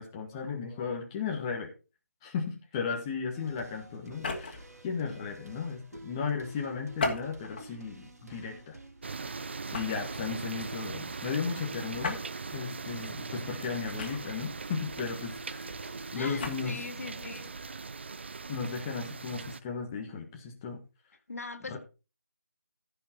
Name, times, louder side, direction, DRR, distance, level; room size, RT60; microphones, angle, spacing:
voice 1, 0.0-1.7 2.2-8.8 9.3-9.4 9.7-12.2 12.5-15.7 16.1-16.8 18.5-20.8 21.7-21.8, left 5 dB, 15° left, 1.6 m, -35 dB
sound 1, 3.3-17.7, right 2 dB, 60° right, 3.6 m, -49 dB
sound 2, 4.1-4.7 6.9-7.7 8.3-8.6 9.7-10.1 12.0-12.3 14.0-14.5 16.2-16.6, left 3 dB, 30° left, 2.6 m, -35 dB
sound 3, 9.0-19.6, right 4 dB, 40° right, 0.5 m, -40 dB
voice 2, 16.1-17.7 21.3-21.8, left 3 dB, 55° left, 1.8 m, -41 dB
15.0 x 5.9 x 4.5 m
figure-of-eight pair, 165°, 9 cm